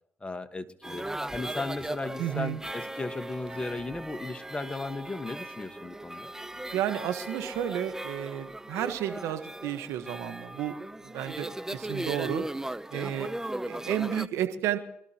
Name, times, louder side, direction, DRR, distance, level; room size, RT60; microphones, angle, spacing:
voice 1, 0.2-1.0 1.3-6.3, left 3 dB, 20° left, 9 dB, 1.5 m, -36 dB
sound 1, 0.8-14.3, right 1 dB, 10° right, 0.7 m, -38 dB
voice 2, 2.2-2.6 6.7-10.7 11.0-12.5 12.9-13.3 13.6-14.8, right 11 dB, 80° right, 9 dB, 1.3 m, -32 dB
25.0 x 13.0 x 3.0 m, 0.70 s
hypercardioid pair, 50°, 5 cm